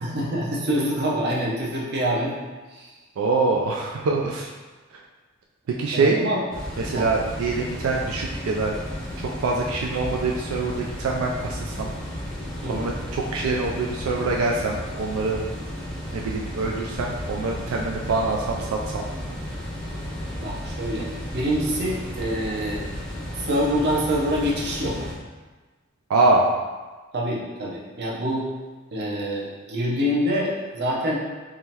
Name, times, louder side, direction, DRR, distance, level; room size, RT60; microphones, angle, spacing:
voice 1, 0.0-2.3 2.7-2.9 5.9-6.4 6.9-7.1 12.6-12.9 20.4-22.8 23.4-25.0 27.1-28.5 28.9-31.2, equal, 55° right, -3 dB, 0.7 m, -26 dB
voice 2, 3.2-4.5 5.8-6.2 6.8-8.8 9.2-11.9 12.7-15.4 16.1-19.1 26.1-26.5, right 3 dB, 85° right, -1 dB, 0.4 m, -24 dB
sound 1, 6.5-25.1, equal, 5° left, 0.6 m, -33 dB
3.7 x 3.1 x 2.8 m, 1.3 s
head